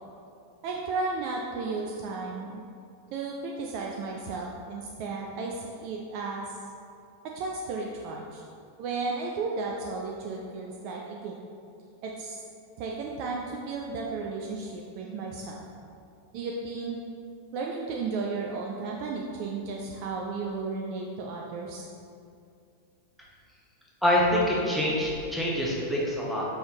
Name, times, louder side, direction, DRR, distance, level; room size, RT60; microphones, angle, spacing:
voice 1, 0.6-2.6 3.1-6.5 7.3-8.4 8.8-11.4 12.0-12.4 12.8-15.6 16.3-17.0 17.5-21.8, right 4 dB, 45° right, -1 dB, 0.4 m, -34 dB
voice 2, 24.0-26.5, left 1 dB, ahead, -6 dB, 0.9 m, -25 dB
5.3 x 3.4 x 2.9 m, 2.5 s
figure-of-eight pair, 90°, 0 cm